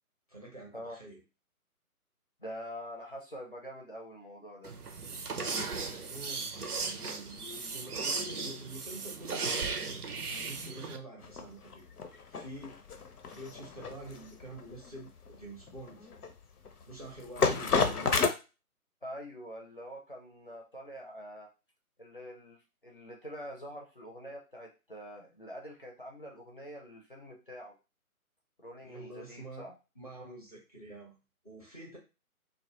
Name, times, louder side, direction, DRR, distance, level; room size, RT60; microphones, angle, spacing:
voice 1, 0.3-1.2 5.3-9.7 10.3-11.9 12.3-12.8 13.3-16.0 16.9-18.2 28.8-29.7 30.0-31.2 31.4-32.0, right 1 dB, 25° right, -1 dB, 0.5 m, -47 dB
voice 2, 2.4-4.7 19.0-21.5 22.0-27.7 28.6-29.7, equal, 40° left, -1 dB, 0.4 m, -45 dB
sound 1, 4.6-11.0, right 4 dB, 90° right, 0.6 m, -36 dB
sound 2, 11.2-18.3, left 5 dB, 85° left, 0.6 m, -31 dB
2.2 x 2.0 x 2.8 m, 0.30 s
figure-of-eight pair, 145°, 44 cm